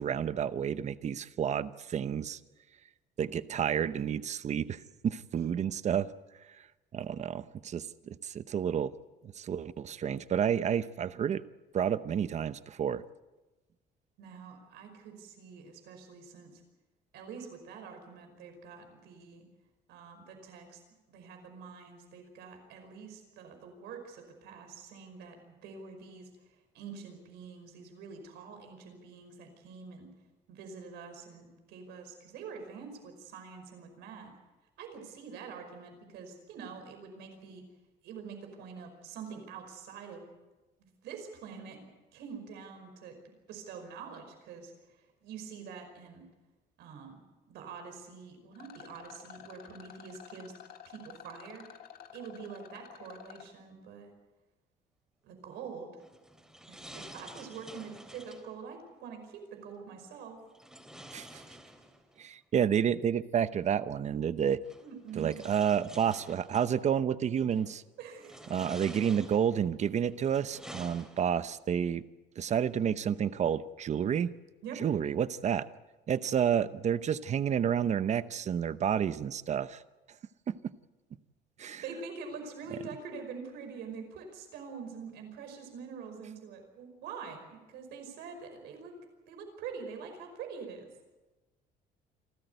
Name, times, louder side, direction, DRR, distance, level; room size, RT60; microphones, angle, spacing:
voice 1, 0.0-2.4 3.2-6.1 6.6-6.7 6.9-8.9 9.2-11.4 11.7-13.0 61.1-61.4 62.2-64.6 65.2-67.8 68.5-72.0 72.4-74.3 74.8-75.7 76.1-79.8 80.5-80.6 81.6-81.8 82.7-82.8, right 8 dB, 45° right, 14 dB, 0.9 m, -30 dB
voice 2, 14.2-16.6 17.1-19.4 19.9-20.8 21.1-26.3 26.7-30.1 30.5-34.3 34.8-37.6 38.0-40.2 40.8-43.2 43.5-46.3 46.8-47.2 47.5-50.5 50.9-51.7 52.1-54.1 55.2-56.0 56.7-60.4 64.8-65.4 68.0-68.4 74.6-74.8 81.6-88.9 89.3-90.9, right 6 dB, 85° right, 5 dB, 5.3 m, -45 dB
Rattle, 48.5-53.5, left 9 dB, 65° left, 1.8 m, -51 dB
sound 1, 56.0-58.5 60.5-62.2 63.6-63.7 64.6-66.7 67.4-67.7 68.2-69.7 70.2-71.6, equal, 5° right, 3.4 m, -50 dB
28.0 x 13.5 x 8.2 m, 1.1 s
cardioid pair, 110°, 17 cm